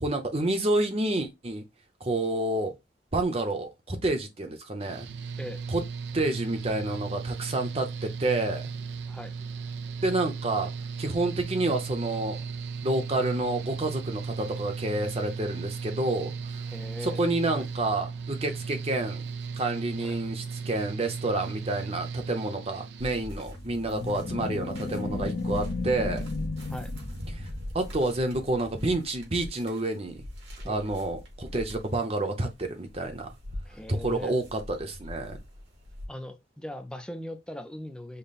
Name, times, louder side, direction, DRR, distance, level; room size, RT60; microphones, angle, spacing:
voice 1, 0.0-1.6 2.0-2.7 3.1-5.1 5.7-5.8 6.1-8.7 10.0-10.7 11.0-12.4 12.8-16.6 17.0-19.2 19.6-26.2 27.4-27.5 27.7-30.2 30.7-33.3 33.9-35.4, right 2 dB, 35° right, 0.9 m, -29 dB
Mechanical fan, 4.8-23.3, right 5 dB, 70° right, 0.5 m, -36 dB
voice 2, 16.7-17.2 17.5-17.6 20.0-20.2 26.7-26.9 30.6-30.8 33.6-34.4 36.1-38.2, left 1 dB, 5° left, 0.5 m, -40 dB
sound 1, 23.0-36.1, left 1 dB, 85° right, 2.3 m, -41 dB
sound 2, 23.4-27.8, left 3 dB, 65° left, 0.9 m, -34 dB
5.4 x 2.2 x 4.1 m
head